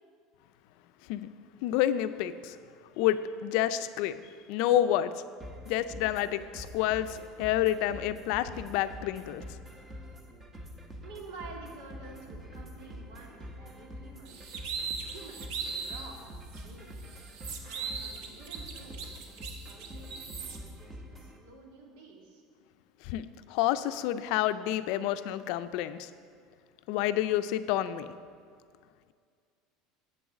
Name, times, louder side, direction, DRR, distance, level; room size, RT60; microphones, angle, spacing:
voice 1, 1.6-2.6 3.0-4.2 4.5-5.1 5.7-9.4 23.0-26.1 26.9-28.1, left 12 dB, 65° left, 12 dB, 0.4 m, -29 dB
sound 1, 5.4-21.4, equal, 20° right, 0.9 m, -46 dB
voice 2, 11.0-14.6 15.1-17.1 17.6-22.4, right 3 dB, 85° right, 0 dB, 2.1 m, -50 dB
sound 2, 14.3-16.1 16.5-16.6 17.0-20.6, right 6 dB, 65° right, 1.1 m, -39 dB
7.5 x 6.3 x 7.9 m, 2.2 s
cardioid pair, 145°, 0 cm